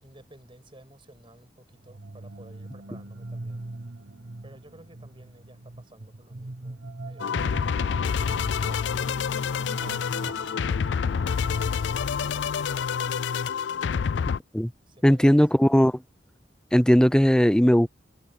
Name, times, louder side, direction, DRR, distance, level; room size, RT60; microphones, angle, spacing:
voice 1, 0.0-4.0 4.4-7.9 8.6-12.9 13.9-14.3 14.9-15.4, right 1 dB, 30° right, 6.3 m, -53 dB
sound 1, 1.7-13.6, right 2 dB, 80° right, 1.4 m, -43 dB
sound 2, 7.2-14.4, left 6 dB, 90° left, 0.4 m, -27 dB
voice 2, 15.0-16.0 16.7-17.9, equal, 5° left, 0.5 m, -18 dB
head